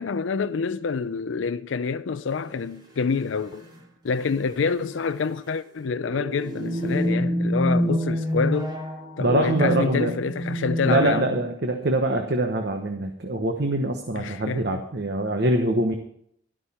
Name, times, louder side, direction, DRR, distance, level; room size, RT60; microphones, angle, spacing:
voice 1, 0.0-3.7 4.0-8.7 9.2-11.3 14.2-14.8, left 5 dB, 75° left, 0.5 m, -27 dB
sound 1, 2.4-2.5 3.5-3.8 4.1-4.2 4.6-4.9 5.8-11.5, equal, 20° right, 2.6 m, -27 dB
voice 2, 9.2-10.1 10.8-15.9, right 1 dB, 55° right, 1.1 m, -24 dB
12.5 x 12.0 x 4.3 m
head